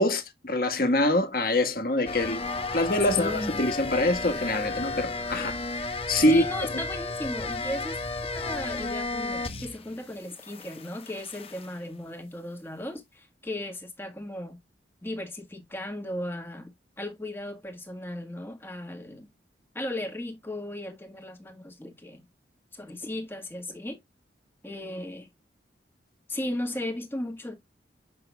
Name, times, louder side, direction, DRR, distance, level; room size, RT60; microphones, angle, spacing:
voice 1, 0.0-2.5 2.7-5.6 6.1-6.4 6.7-6.8, left 1 dB, 50° left, 1.4 m, -25 dB
sound 1, 2.1-9.9 10.2-11.7, left 3 dB, 30° left, 0.8 m, -33 dB
voice 2, 3.1-3.6 6.3-8.0 8.3-14.6 15.0-16.7 17.0-19.3 19.7-22.2 22.7-24.0 24.6-25.3 26.3-27.5, left 1 dB, 10° left, 1.6 m, -36 dB
7.6 x 5.9 x 2.2 m
head